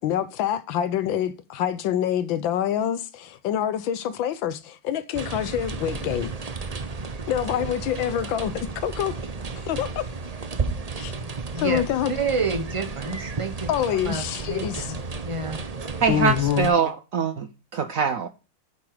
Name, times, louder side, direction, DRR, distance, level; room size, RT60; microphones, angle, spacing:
voice 1, 0.0-6.3 7.3-9.2 9.7-10.1 11.0-11.1 11.6-12.1 13.7-14.9 16.1-16.7, left 10 dB, 75° left, 1.5 m, -26 dB
sound 1, 5.1-16.7, right 4 dB, 90° right, 0.3 m, -33 dB
voice 2, 12.1-13.7 14.0-14.2 14.5-14.9 15.2-15.6, right 4 dB, 25° right, 0.8 m, -28 dB
voice 3, 16.0-17.5 17.7-18.3, right 6 dB, 70° right, 0.8 m, -23 dB
9.9 x 7.4 x 4.9 m
omnidirectional pair, 2.2 m